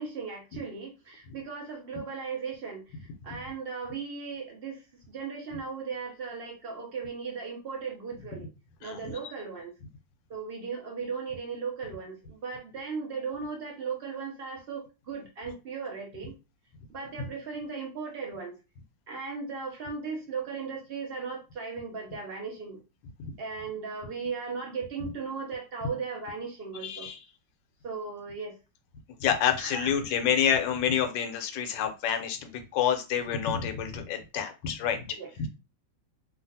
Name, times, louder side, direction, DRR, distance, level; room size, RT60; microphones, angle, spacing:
voice 1, 0.0-2.8 3.2-4.8 5.1-8.5 8.8-9.7 10.3-16.3 16.9-18.6 19.1-22.8 23.4-27.1 27.8-28.5 29.6-30.2 35.1-35.3, right 5 dB, 65° right, 1 dB, 0.6 m, -37 dB
voice 2, 26.8-27.2 29.2-35.1 35.4-35.5, left 8 dB, 85° left, 6 dB, 1.3 m, -28 dB
3.1 x 2.4 x 2.6 m, 0.29 s
omnidirectional pair, 1.9 m